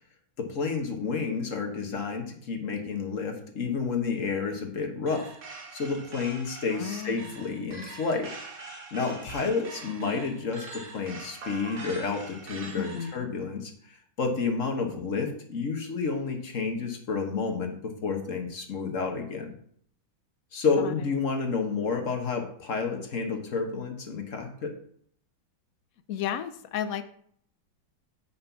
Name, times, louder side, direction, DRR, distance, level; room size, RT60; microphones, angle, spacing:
voice 1, 0.4-5.3 5.7-8.3 8.9-19.5 20.5-24.7, left 4 dB, 45° left, 4 dB, 1.5 m, -30 dB
sound 1, 5.1-13.2, right 3 dB, 50° right, 1.7 m, -43 dB
voice 2, 6.7-7.3 12.8-13.1 20.8-20.9 26.1-27.0, left 9 dB, 70° left, 11 dB, 0.8 m, -33 dB
9.5 x 4.3 x 5.8 m, 0.64 s
omnidirectional pair, 2.1 m